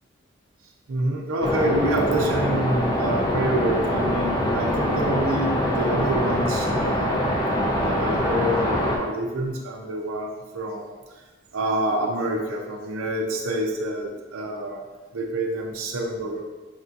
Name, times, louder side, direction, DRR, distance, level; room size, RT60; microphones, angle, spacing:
voice 1, 0.9-7.2 7.8-10.9 11.5-14.8 15.1-16.4, right 1 dB, 90° right, 0 dB, 0.5 m, -27 dB
sound 1, 1.4-9.0, left 1 dB, 20° left, 0.5 m, -24 dB
5.3 x 2.7 x 2.4 m, 1.2 s
head